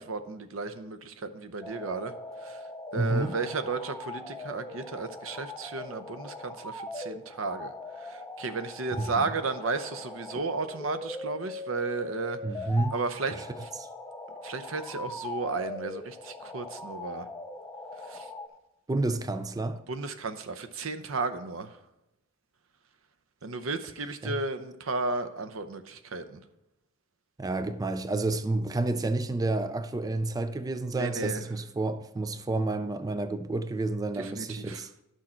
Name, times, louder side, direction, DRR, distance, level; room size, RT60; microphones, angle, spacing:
voice 1, 0.0-2.2 2.4-2.6 2.9-13.7 14.4-17.3 18.1-18.3 19.9-21.8 23.4-26.4 30.9-31.4 34.1-34.8, right 3 dB, 80° right, 0.7 m, -34 dB
sound 1, 1.6-18.5, left 2 dB, 10° left, 0.7 m, -41 dB
voice 2, 3.0-3.3 9.0-9.3 12.4-13.0 18.9-19.8 24.2-24.4 27.4-34.9, right 2 dB, 20° right, 0.4 m, -30 dB
11.5 x 6.3 x 4.4 m
head